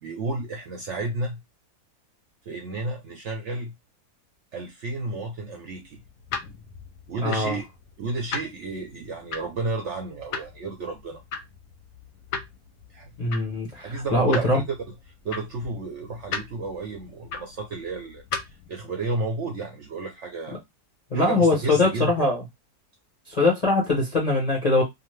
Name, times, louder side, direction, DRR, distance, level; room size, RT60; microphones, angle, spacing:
voice 1, 0.0-1.4 2.5-3.7 4.5-6.0 7.1-7.7 8.0-11.2 12.9-13.1 13.7-14.9 15.2-18.2 18.7-20.6 21.1-22.3, right 3 dB, 65° right, 0.7 m, -32 dB
sound 1, 5.8-18.7, left 5 dB, 70° left, 0.9 m, -38 dB
voice 2, 7.2-7.6 13.2-14.6 21.1-22.4 23.3-24.8, left 2 dB, 40° left, 0.5 m, -22 dB
2.6 x 2.4 x 3.1 m
omnidirectional pair, 1.7 m